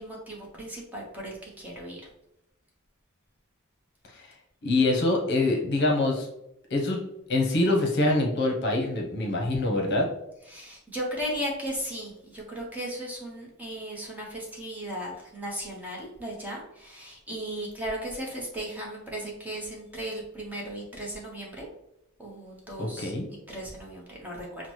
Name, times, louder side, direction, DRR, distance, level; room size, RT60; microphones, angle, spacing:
voice 1, 0.0-2.1 10.5-21.7 22.2-24.7, equal, 10° right, -3 dB, 0.9 m, -36 dB
voice 2, 4.6-6.3 6.7-7.0 7.3-10.1 22.8-23.3, left 2 dB, 55° left, 1 dB, 0.8 m, -25 dB
5.8 x 2.1 x 3.1 m, 0.82 s
head